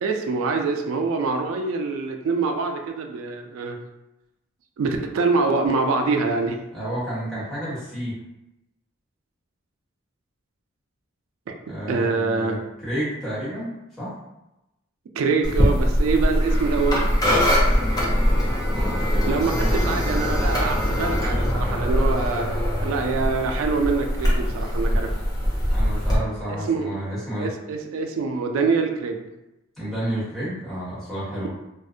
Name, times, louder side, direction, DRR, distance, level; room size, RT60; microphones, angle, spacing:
voice 1, 0.0-3.8 4.8-6.6 11.5-11.6 11.9-12.5 15.1-17.1 19.3-25.1 26.7-26.9 27.4-29.3, right 4 dB, 85° right, 4 dB, 0.3 m, -25 dB
voice 2, 6.7-8.2 11.7-14.1 18.7-20.0 25.7-27.5 29.8-31.5, equal, ahead, -12 dB, 1.0 m, -31 dB
sound 1, 15.4-26.2, equal, 20° left, 0.4 m, -22 dB
2.6 x 2.1 x 2.4 m, 0.93 s
head